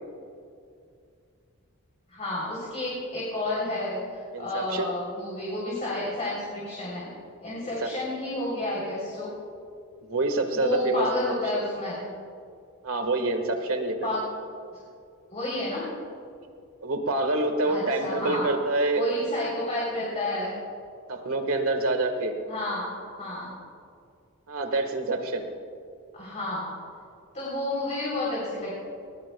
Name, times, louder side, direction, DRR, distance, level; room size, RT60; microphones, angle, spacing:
voice 1, 2.1-7.1 7.4-9.3 10.5-12.1 14.0-14.2 15.3-15.8 17.6-18.5 18.9-20.5 22.5-23.5 26.1-26.7 27.3-28.8, left 1 dB, 35° left, -6 dB, 3.5 m, -30 dB
voice 2, 4.3-4.9 7.6-7.9 10.0-11.1 12.8-14.0 16.8-19.0 21.1-22.3 24.5-25.5, right 2 dB, 80° right, 6 dB, 1.6 m, -26 dB
20.0 x 18.5 x 2.3 m, 2.4 s
head